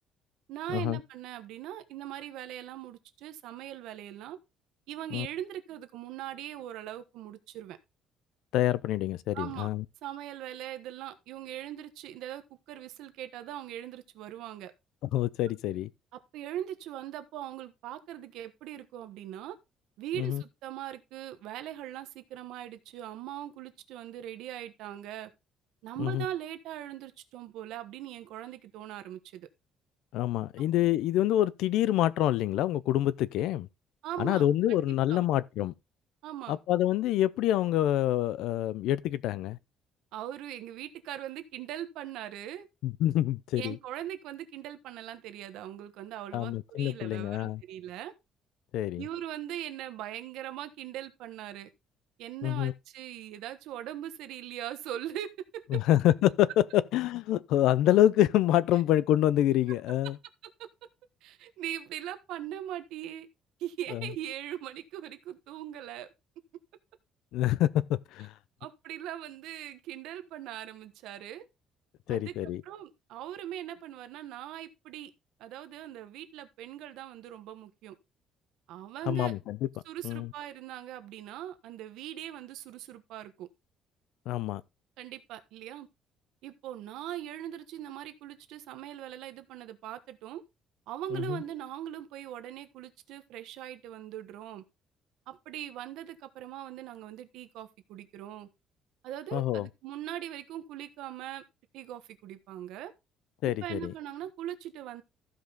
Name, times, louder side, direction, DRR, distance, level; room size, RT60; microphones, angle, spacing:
voice 1, 0.5-4.4 4.9-7.8 9.3-9.7 10.0-14.7 16.1-19.6 20.0-25.3 25.8-29.5 34.0-34.5 35.1-35.3 36.2-36.6 40.1-42.7 43.6-48.1 49.0-51.7 52.2-55.8 60.4-60.7 61.2-63.3 63.6-66.1 68.6-71.5 72.1-75.1 75.4-77.9 78.7-79.3 79.8-83.5 85.0-85.9 86.4-90.4 90.9-94.6 95.3-98.5 99.0-101.4 101.7-102.9 103.4-105.0, right 12 dB, 75° right, 1.2 m, -40 dB
voice 2, 8.5-9.8 15.1-15.9 20.2-20.4 26.0-26.2 30.1-33.7 34.2-35.7 36.5-39.6 42.8-43.8 46.3-47.6 48.7-49.0 52.4-52.7 55.7-60.2 63.9-64.1 67.3-68.3 72.1-72.6 79.1-79.7 80.0-80.3 84.3-84.6 91.1-91.4 99.3-99.7 103.4-103.9, left 13 dB, 70° left, 0.6 m, -27 dB
14.5 x 5.2 x 3.9 m
cardioid pair, 175°, 0 cm